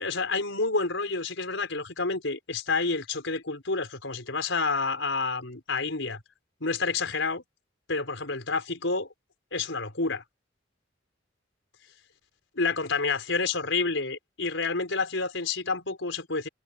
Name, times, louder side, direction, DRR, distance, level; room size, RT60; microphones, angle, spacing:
voice 1, 0.0-6.2 6.6-7.4 7.9-9.1 9.5-10.2 12.6-16.5, left 4 dB, 90° left, 4.9 m, -29 dB
head